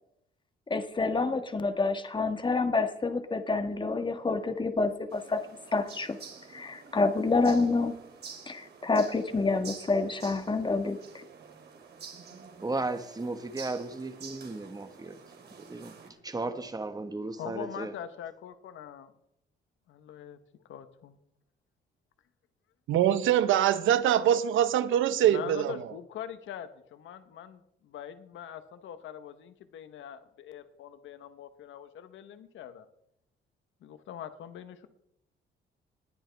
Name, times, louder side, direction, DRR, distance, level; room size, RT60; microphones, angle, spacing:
voice 1, 0.7-5.4 5.7-6.2 6.5-8.0 8.5-11.2, left 3 dB, 25° left, 1.5 m, -28 dB
sound 1, 5.1-16.1, right 5 dB, 55° right, 2.9 m, -49 dB
voice 2, 12.6-15.2 15.6-17.9, right 2 dB, 20° right, 1.4 m, -35 dB
voice 3, 17.4-19.1 19.9-20.4 20.7-21.2 25.2-32.9 33.8-34.9, left 9 dB, 75° left, 1.1 m, -43 dB
voice 4, 22.9-25.7, right 10 dB, 80° right, 0.9 m, -23 dB
19.0 x 10.5 x 3.5 m
cardioid pair, 90°, 20 cm